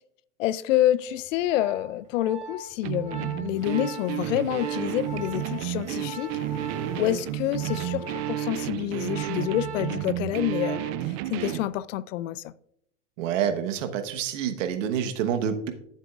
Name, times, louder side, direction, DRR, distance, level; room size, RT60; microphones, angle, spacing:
voice 1, 0.4-6.3 7.0-12.5, left 13 dB, 85° left, 0.5 m, -28 dB
Organ, 1.2-11.2 11.5-11.8, equal, 20° right, 2.1 m, -41 dB
sound 1, 2.8-11.7, right 15 dB, 55° right, 0.5 m, -32 dB
sound 2, 3.5-8.8, right 7 dB, 55° left, 3.7 m, -46 dB
voice 2, 13.2-15.7, right 8 dB, 80° right, 1.2 m, -27 dB
13.0 x 7.4 x 2.4 m
supercardioid pair, 125°, 37 cm